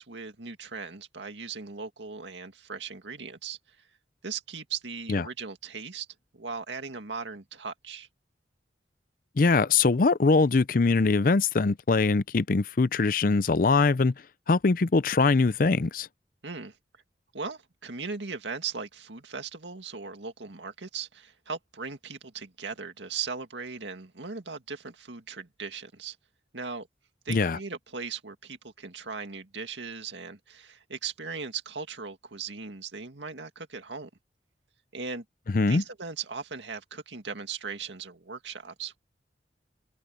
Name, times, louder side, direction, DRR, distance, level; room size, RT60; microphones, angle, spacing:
voice 1, 0.0-3.6 4.2-6.1 6.3-8.1 16.4-16.8 17.3-26.2 26.5-26.9 27.3-34.1 34.9-35.2 35.7-39.0, right 5 dB, 90° right, 2.1 m, -38 dB
voice 2, 9.4-14.1 14.5-16.1 27.3-27.6 35.5-35.8, left 3 dB, 50° left, 0.5 m, -22 dB
head